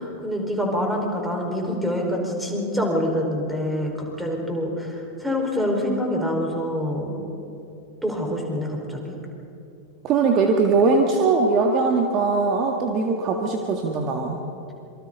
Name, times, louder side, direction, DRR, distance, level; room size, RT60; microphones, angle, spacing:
voice 1, 0.0-7.2 8.0-9.1, equal, 5° right, 0 dB, 4.8 m, -26 dB
voice 2, 10.0-14.4, right 4 dB, 35° right, 2 dB, 1.8 m, -21 dB
26.5 x 24.5 x 4.0 m, 2.7 s
figure-of-eight pair, 90°, 0 cm